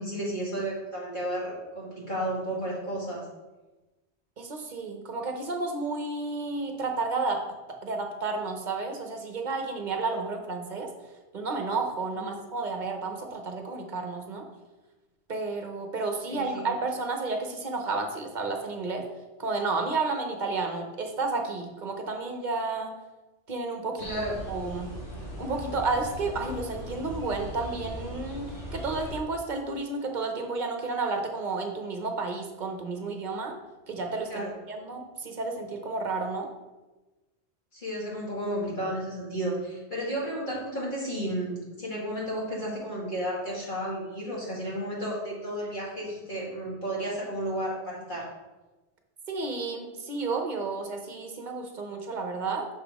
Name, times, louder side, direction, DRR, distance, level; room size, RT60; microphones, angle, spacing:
voice 1, 0.0-3.3 12.1-12.3 16.3-16.7 24.0-24.4 34.3-34.5 37.7-48.2, right 1 dB, 45° left, -6 dB, 2.4 m, -33 dB
voice 2, 4.4-7.4 7.8-10.9 11.3-14.5 15.3-19.1 19.4-22.9 23.5-24.9 25.4-33.6 33.9-36.5 49.3-52.7, right 3 dB, 45° right, 3 dB, 1.0 m, -31 dB
sound 1, 24.0-29.2, equal, 75° left, 2.2 m, -39 dB
6.4 x 5.8 x 3.6 m, 1.1 s
omnidirectional pair, 1.2 m